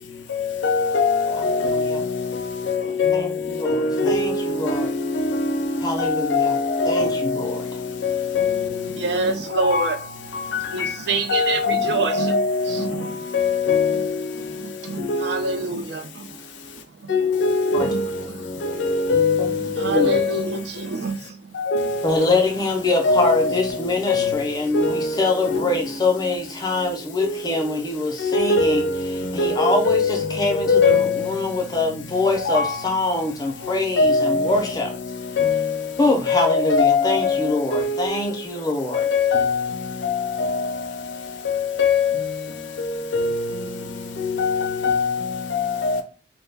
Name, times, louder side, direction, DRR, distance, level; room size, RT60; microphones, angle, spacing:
voice 1, 0.6-2.4 2.7-3.3 3.7-7.6 8.0-8.7 9.5-9.9 10.5-10.9 11.3-13.0 13.3-14.1 15.1-15.4 17.1-18.2 18.6-20.3 21.6-22.1 23.0-23.7 24.1-24.4 24.7-25.6 27.2-27.4 28.2-30.2 30.5-31.2 32.5-32.7 34.0-34.6 35.4-35.7 36.3-38.2 38.9-39.8 40.0-40.8 41.5-42.2 42.8-43.7 44.2-46.0, left 4 dB, 75° left, 0.4 m, -22 dB
voice 2, 1.5-2.0 3.1-4.9 5.8-6.5 6.9-7.7 17.7-17.9 19.4-19.5 19.9-20.1 22.0-28.8 29.3-34.9 36.0-39.1, left 2 dB, 20° left, 0.5 m, -24 dB
voice 3, 8.9-10.0 10.4-12.4 12.7-13.3 13.9-14.0 14.4-17.2 17.8-18.0 18.3-18.6 19.7-21.6 22.5-22.7, right 3 dB, 65° right, 0.4 m, -28 dB
2.1 x 2.1 x 3.3 m
head